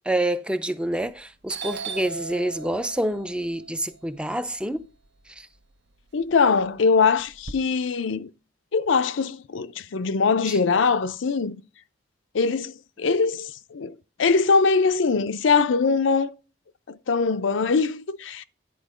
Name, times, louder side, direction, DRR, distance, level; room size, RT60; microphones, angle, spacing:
voice 1, 0.1-4.9 5.3-5.5 10.5-10.6, right 1 dB, 5° right, 0.5 m, -27 dB
Doorbell, 0.9-1.2 1.5-5.6 6.0-7.5, right 5 dB, 65° right, 0.7 m, -38 dB
voice 2, 6.1-8.3 8.7-11.6 12.3-16.3 16.9-18.4, left 4 dB, 80° left, 0.5 m, -22 dB
10.5 x 4.5 x 4.9 m
head